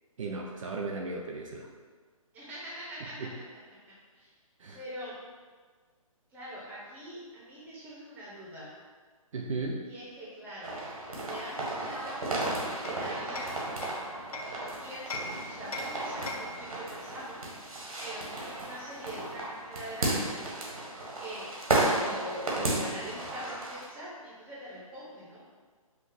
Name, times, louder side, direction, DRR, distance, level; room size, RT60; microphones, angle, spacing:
voice 1, 0.2-1.7 3.2-3.3 4.6-4.8 9.3-9.8, right 3 dB, 60° right, 0 dB, 0.6 m, -35 dB
voice 2, 2.3-3.2 3.9-4.3 4.7-5.1 6.3-8.7 9.9-10.7 11.2-13.5 14.8-17.4 18.0-20.4 21.2-21.5 21.9-25.4, equal, 10° right, -8 dB, 1.1 m, -43 dB
sound 1, 10.6-23.9, right 2 dB, 75° right, 1.5 m, -34 dB
Hammer, 12.1-14.6 15.1-16.7, left 2 dB, 80° left, 0.6 m, -41 dB
5.3 x 2.4 x 4.0 m, 1.5 s
figure-of-eight pair, 145°, 18 cm